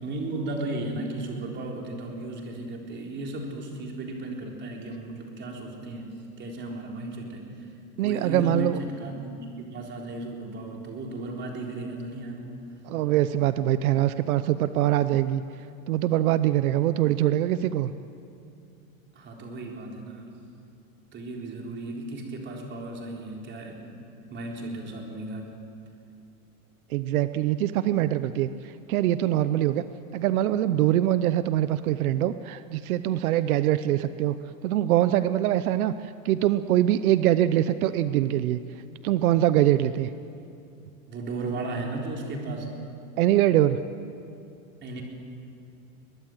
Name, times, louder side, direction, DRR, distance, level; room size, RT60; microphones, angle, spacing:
voice 1, 0.0-6.1 6.4-7.7 8.0-12.6 19.1-20.3 21.1-23.9 24.3-25.5 41.1-42.7 44.8-45.0, right 2 dB, 25° right, 0 dB, 4.0 m, -35 dB
voice 2, 8.0-8.8 12.8-15.4 15.9-17.9 26.9-29.8 30.1-34.4 34.6-38.6 39.0-40.1 43.2-43.8, right 13 dB, 85° right, 13 dB, 0.9 m, -23 dB
23.0 x 20.5 x 7.9 m, 2.5 s
supercardioid pair, 150°, 42 cm